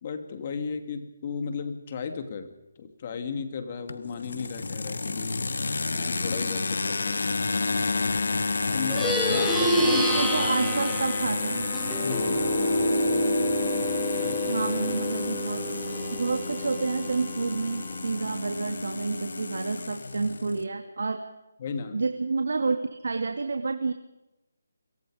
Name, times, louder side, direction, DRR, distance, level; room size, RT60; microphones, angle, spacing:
voice 1, 0.0-5.4 5.9-7.2 8.7-10.1 12.0-12.5 14.2-14.6 21.6-22.0, left 5 dB, 35° left, 7 dB, 2.6 m, -35 dB
sound 1, 3.9-20.6, left 3 dB, 70° left, 1.8 m, -31 dB
Plucked string instrument, 8.8-18.5, equal, ahead, 4.3 m, -28 dB
voice 2, 9.9-11.7 14.5-15.8 16.1-21.2 21.9-22.8 23.0-23.9, right 4 dB, 70° right, 6 dB, 2.3 m, -29 dB
29.0 x 23.5 x 5.2 m, 0.94 s
figure-of-eight pair, 165°, 0 cm